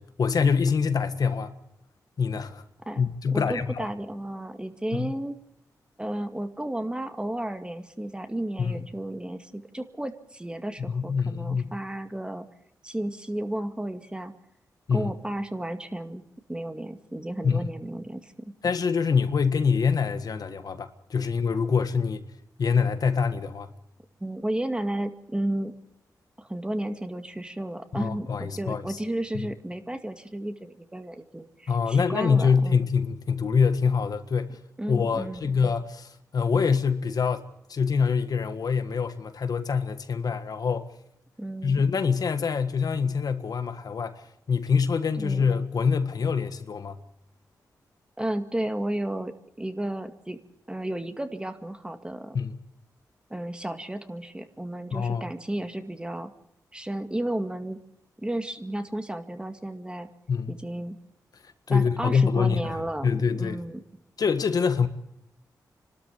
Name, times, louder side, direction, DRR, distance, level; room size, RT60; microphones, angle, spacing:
voice 1, 0.0-1.5 2.2-2.6 3.0-3.8 4.9-5.1 8.6-8.8 10.9-11.8 14.9-15.1 17.4-17.7 18.6-22.3 22.6-23.7 27.9-29.0 31.7-34.6 34.9-40.9 41.6-44.2 44.5-47.0 52.3-52.6 54.9-55.3 60.3-60.5 61.7-62.7 63.0-63.6 64.2-64.9, left 5 dB, 65° left, 1.6 m, -25 dB
voice 2, 2.9-5.4 6.0-12.5 12.8-14.3 14.9-16.2 16.5-18.5 24.2-25.7 26.4-32.8 34.8-35.5 41.4-41.8 45.2-45.5 48.2-49.3 49.6-50.4 50.7-52.4 53.3-56.3 56.7-57.8 58.2-60.1 60.5-61.0 61.7-63.8, right 1 dB, 15° right, 2.1 m, -33 dB
27.5 x 13.0 x 8.7 m
cardioid pair, 70°, 7 cm